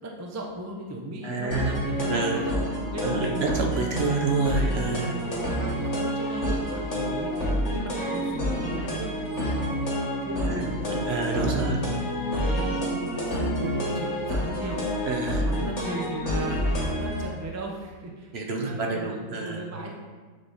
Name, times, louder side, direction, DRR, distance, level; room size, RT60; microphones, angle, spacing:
voice 1, 0.0-3.6 4.1-4.3 5.1-9.8 10.2-12.0 12.3-12.8 13.2-14.9 15.4-16.6 17.0-19.9, right 2 dB, 20° right, 0 dB, 0.4 m, -37 dB
voice 2, 1.2-1.7 2.1-2.4 3.0-5.1 10.4-10.6 11.1-11.8 15.1-15.5 18.3-19.6, right 3 dB, 55° right, 1 dB, 0.8 m, -28 dB
sound 1, 1.5-17.2, equal, 65° left, 2.2 m, -28 dB
8.4 x 3.6 x 4.1 m, 1.4 s
omnidirectional pair, 1.5 m